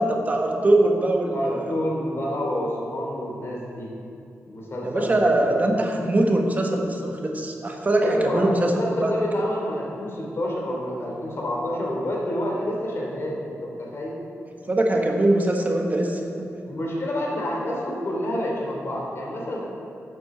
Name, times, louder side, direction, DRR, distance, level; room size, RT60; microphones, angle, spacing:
voice 1, 0.0-1.7 4.8-9.1 14.7-16.5, right 1 dB, 30° right, 1 dB, 1.2 m, -22 dB
voice 2, 1.3-3.9 4.4-5.3 5.6-5.7 8.0-14.2 16.6-19.7, left 1 dB, 50° left, -2 dB, 3.0 m, -28 dB
9.8 x 8.7 x 6.7 m, 2.5 s
wide cardioid pair, 135°, 5 cm